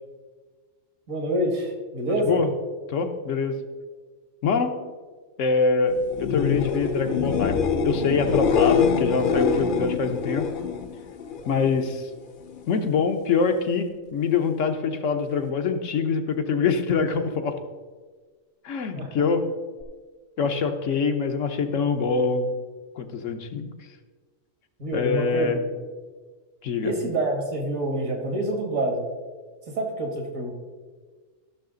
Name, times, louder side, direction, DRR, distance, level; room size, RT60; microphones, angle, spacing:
voice 1, 1.1-2.4 19.0-19.1 24.8-25.5 26.8-29.0 29.7-30.6, right 1 dB, 80° right, 2 dB, 2.3 m, -27 dB
voice 2, 2.1-2.5 2.9-3.6 4.4-4.7 5.4-10.5 11.5-12.1 12.7-17.6 18.6-19.4 20.4-22.5 23.0-23.7 24.9-25.6 26.6-26.9, left 5 dB, 70° left, 6 dB, 1.2 m, -24 dB
sound 1, 6.1-11.8 12.2-12.7 19.8-19.9, left 6 dB, 50° left, 0.7 m, -25 dB
14.0 x 6.4 x 3.8 m, 1.4 s
omnidirectional pair, 1.4 m